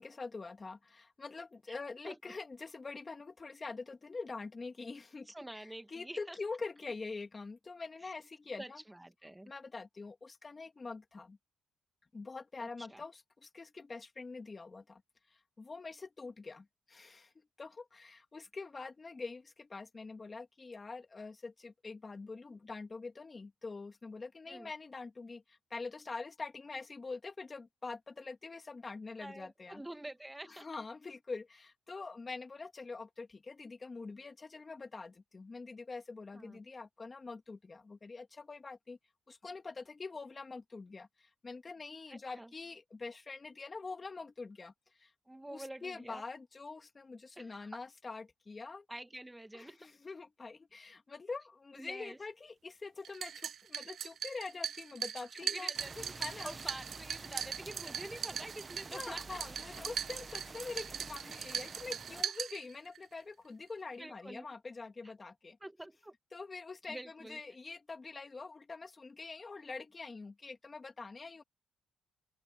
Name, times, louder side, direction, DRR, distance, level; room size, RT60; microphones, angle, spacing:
voice 1, 0.0-8.8 9.5-11.4 12.1-15.0 15.3-17.3 17.6-29.8 30.4-39.0 39.3-44.7 45.0-45.1 45.5-48.9 49.5-56.6 58.9-65.6 66.3-71.4, left 4 dB, 30° left, 2.7 m, -45 dB
voice 2, 5.3-6.4 8.0-8.1 8.6-9.5 12.6-13.0 24.5-24.7 29.2-30.7 36.3-36.6 42.1-42.5 45.3-46.2 47.4-47.7 48.9-49.8 51.8-52.2 55.3-59.4 64.0-64.5 65.0-65.1 65.6-66.1 66.9-67.4, right 1 dB, 10° right, 1.6 m, -47 dB
sound 1, 53.0-63.0, right 8 dB, 60° right, 0.5 m, -40 dB
sound 2, 55.7-62.2, right 3 dB, 25° right, 1.0 m, -49 dB
open air
cardioid pair, 90°, 0 cm